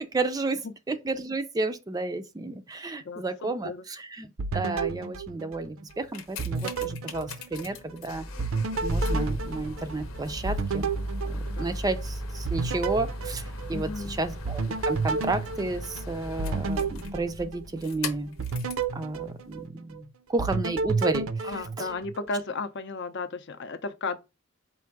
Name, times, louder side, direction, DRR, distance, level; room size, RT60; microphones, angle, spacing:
voice 1, 0.0-0.6 0.9-8.3 8.8-10.9 11.2-18.4 18.9-21.9, right 2 dB, 20° right, 0.4 m, -32 dB
voice 2, 3.0-3.8 11.6-11.8 13.7-14.2 21.5-24.2, left 3 dB, 55° left, 0.5 m, -34 dB
sound 1, 4.4-6.0 6.4-8.0 8.4-12.0 12.5-14.0 14.4-17.9 18.4-20.0 20.4-22.4, right 4 dB, 75° right, 0.5 m, -32 dB
sound 2, 5.9-18.9 19.6-19.7, left 1 dB, 90° left, 0.9 m, -36 dB
4.5 x 2.5 x 4.5 m
head